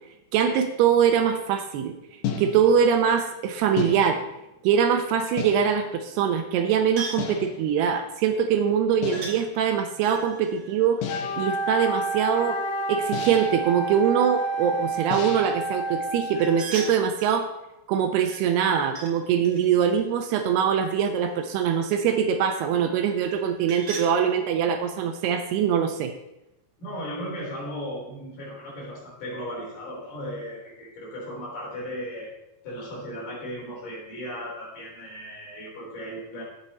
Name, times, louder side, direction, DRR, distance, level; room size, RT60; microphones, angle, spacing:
voice 1, 0.3-1.9 2.4-4.2 4.6-11.0 11.4-12.6 12.9-17.5 17.9-26.1, right 7 dB, 80° right, 6 dB, 2.7 m, -23 dB
sound 1, 2.2-2.9 3.8-4.4 5.4-6.0 7.2-7.7 9.0-9.5 11.0-11.6 13.1-13.7 15.1-15.7, left 7 dB, 70° left, 2.9 m, -33 dB
sound 2, 7.0-7.3 9.1-9.4 10.0-11.8 16.3-17.4 18.3-19.1 19.4-21.3 23.2-24.1, right 4 dB, 60° right, 1.8 m, -39 dB
Wind instrument woodwind instrument, 11.1-17.0, right 3 dB, 90° left, 2.9 m, -29 dB
voice 2, 26.8-32.3 32.6-36.4, equal, 50° left, -4 dB, 4.9 m, -36 dB
12.0 x 8.5 x 4.2 m, 0.90 s
omnidirectional pair, 4.9 m